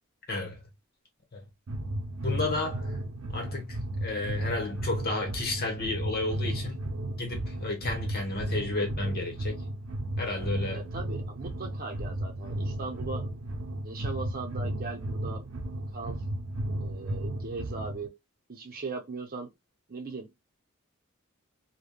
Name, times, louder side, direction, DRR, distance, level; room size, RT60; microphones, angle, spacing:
voice 1, 0.3-0.6 1.3-1.4 2.2-3.0 3.3-6.8 7.2-9.6 10.2-10.9, left 2 dB, 45° left, 1.1 m, -32 dB
sound 1, 1.7-18.1, right 1 dB, 80° right, 0.6 m, -34 dB
voice 2, 10.7-13.3 13.8-16.2 16.8-18.2 18.5-19.5 19.9-20.3, right 3 dB, 45° right, 0.7 m, -39 dB
3.4 x 2.2 x 2.2 m
head